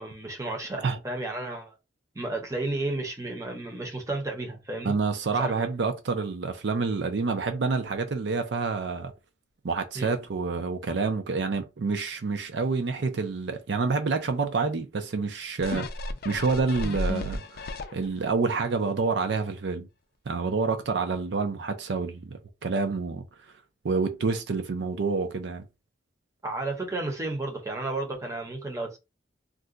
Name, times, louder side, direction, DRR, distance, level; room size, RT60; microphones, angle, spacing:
voice 1, 0.0-1.8 2.1-5.0 5.3-5.7 9.9-10.1 26.4-29.0, right 2 dB, 15° right, 0.7 m, -32 dB
voice 2, 4.8-9.1 9.6-15.9 16.2-17.6 17.9-19.9 20.3-23.2 23.8-25.6, right 4 dB, 70° right, 0.5 m, -28 dB
sound 1, 15.6-18.3 18.8-18.9, left 2 dB, 55° left, 0.4 m, -33 dB
2.5 x 2.2 x 3.7 m
head